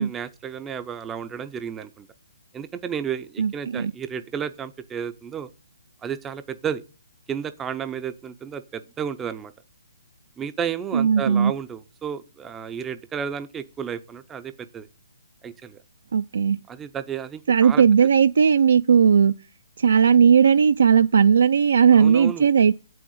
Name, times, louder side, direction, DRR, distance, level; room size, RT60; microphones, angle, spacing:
voice 1, 0.0-2.1 2.5-5.5 6.0-6.8 7.3-9.5 10.4-14.9 15.4-15.8 16.7-17.8 21.9-22.5, right 8 dB, 10° right, 0.4 m, -32 dB
voice 2, 3.4-3.9 10.9-11.5 16.1-16.6 17.5-19.3 19.8-22.7, right 7 dB, 70° right, 0.4 m, -17 dB
7.7 x 6.2 x 7.1 m
hypercardioid pair, 160°, 0 cm